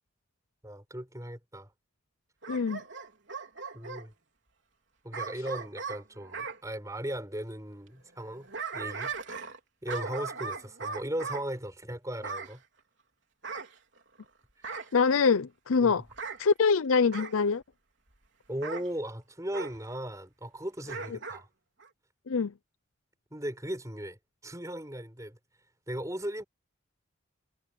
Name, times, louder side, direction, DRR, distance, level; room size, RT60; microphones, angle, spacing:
voice 1, 0.6-1.7 3.7-4.1 5.0-8.5 8.7-9.1 9.8-12.6 15.8-15.9 18.5-21.5 23.3-25.4 25.9-26.4, right 1 dB, 15° right, 5.7 m, -37 dB
Bark / Growling, 2.4-4.1 5.1-6.6 8.2-9.6 9.9-11.4 12.2-12.5 13.4-14.2 14.6-15.0 16.1-16.4 17.1-17.4 18.6-18.9 19.5-19.8 20.8-21.4 21.8-21.9, right 4 dB, 65° right, 3.8 m, -38 dB
voice 2, 2.5-2.8 14.9-16.0 16.4-17.6 22.3-22.5, left 5 dB, 85° left, 0.6 m, -24 dB
head